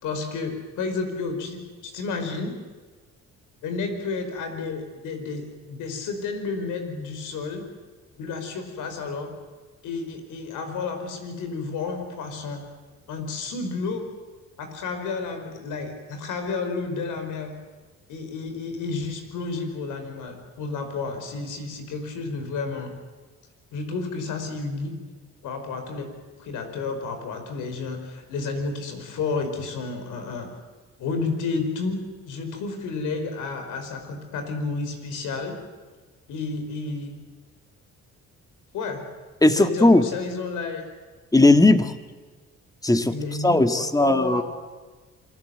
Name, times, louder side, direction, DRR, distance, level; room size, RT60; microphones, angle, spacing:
voice 1, 0.0-2.6 3.6-7.6 8.2-9.3 9.8-12.6 13.1-14.0 14.6-17.5 18.1-22.9 23.7-24.9 25.4-26.1 26.4-30.5 31.0-35.6 36.3-37.1 38.7-39.0 39.5-40.8 43.1-44.4, left 4 dB, 90° left, 6 dB, 5.1 m, -31 dB
voice 2, 39.4-40.1 41.3-41.9 42.8-43.2 43.4-44.4, left 2 dB, 10° left, 8 dB, 1.8 m, -17 dB
27.5 x 20.5 x 7.9 m, 1.4 s
cardioid pair, 90°, 30 cm